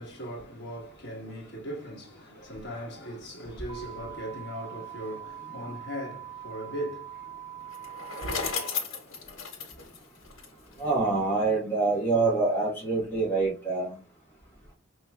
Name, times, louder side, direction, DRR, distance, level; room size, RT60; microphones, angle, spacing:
voice 1, 0.0-8.5, equal, 55° left, 1.4 m, -39 dB
sound 1, 3.7-8.7, right 10 dB, 20° right, 0.4 m, -43 dB
Bicycle, 7.7-10.9, left 5 dB, 75° left, 1.5 m, -35 dB
voice 2, 10.8-13.9, right 3 dB, 10° left, 1.3 m, -26 dB
5.2 x 3.0 x 2.3 m
head